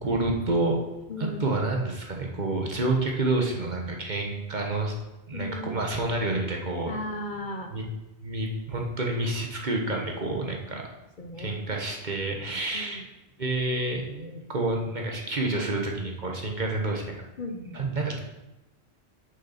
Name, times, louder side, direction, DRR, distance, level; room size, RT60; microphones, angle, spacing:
voice 1, 0.0-0.8 1.2-4.9 5.3-6.9 7.7-7.8 8.2-10.8 11.4-13.0 13.4-17.0 17.7-18.2, right 2 dB, 45° right, 1 dB, 1.2 m, -28 dB
voice 2, 1.1-1.6 5.3-5.9 6.9-7.7 10.7-10.8 11.2-11.5 12.7-13.0 17.4-17.8, left 1 dB, 45° left, 4 dB, 0.9 m, -36 dB
6.6 x 6.5 x 5.7 m, 0.99 s
omnidirectional pair, 1.2 m